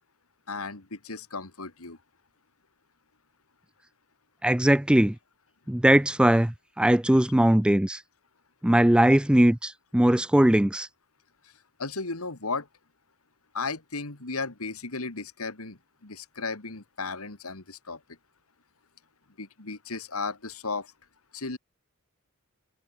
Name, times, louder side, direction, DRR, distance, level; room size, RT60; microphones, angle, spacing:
voice 1, 0.5-2.0 11.4-11.5 11.8-12.7 13.5-18.0 19.4-20.9 21.3-21.6, left 4 dB, 75° left, 2.5 m, -35 dB
voice 2, 4.4-5.1 5.7-8.0 8.6-10.9, right 1 dB, 5° right, 0.4 m, -20 dB
head